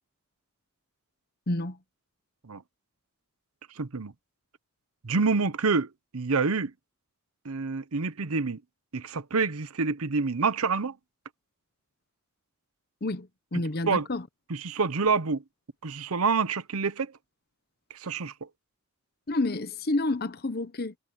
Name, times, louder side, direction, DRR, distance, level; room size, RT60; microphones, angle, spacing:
voice 1, 1.5-1.8 13.0-14.3 19.3-21.0, left 2 dB, 45° left, 0.9 m, -29 dB
voice 2, 3.8-4.1 5.0-6.7 7.4-8.6 8.9-11.0 13.9-14.1 14.5-15.4 15.8-17.1 17.9-18.5, right 4 dB, 85° right, 0.9 m, -27 dB
head